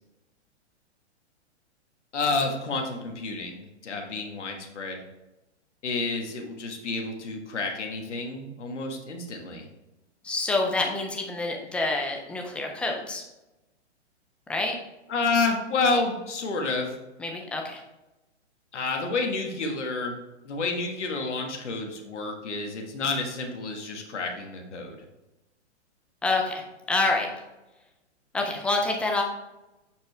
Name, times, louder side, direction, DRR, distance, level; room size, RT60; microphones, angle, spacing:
voice 1, 2.1-5.0 5.8-9.7 15.1-17.0 18.7-20.2 20.4-24.9, left 3 dB, 80° left, 2 dB, 1.6 m, -29 dB
voice 2, 10.2-13.2 14.5-14.7 17.2-17.8 26.2-26.6 26.9-27.3 28.3-29.2, left 2 dB, 5° left, 1 dB, 0.3 m, -27 dB
7.0 x 5.9 x 3.3 m, 1.0 s
hypercardioid pair, 130°, 35 cm